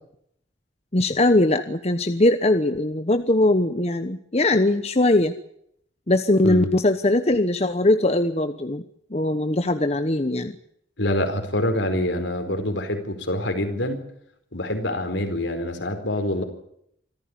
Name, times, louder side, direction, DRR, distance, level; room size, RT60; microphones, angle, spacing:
voice 1, 0.9-5.3 6.1-8.8 9.1-10.6, left 1 dB, 35° left, 9 dB, 1.0 m, -20 dB
voice 2, 11.0-14.0 14.5-16.4, left 1 dB, 75° left, 6 dB, 4.5 m, -25 dB
26.0 x 14.5 x 9.9 m, 0.73 s
head